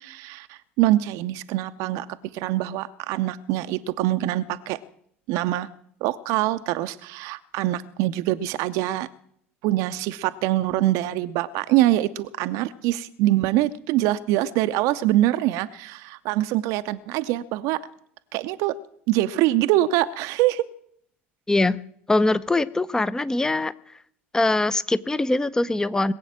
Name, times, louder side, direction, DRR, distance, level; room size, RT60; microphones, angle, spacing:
voice 1, 0.0-4.8 5.3-5.7 6.0-9.1 9.6-17.8 18.3-18.8 19.1-20.6, right 15 dB, 55° right, 11 dB, 0.6 m, -24 dB
voice 2, 21.5-21.8 22.1-23.7 24.3-26.1, left 2 dB, 10° left, 16 dB, 0.6 m, -22 dB
20.5 x 7.9 x 7.5 m, 0.67 s
figure-of-eight pair, 70°, 7 cm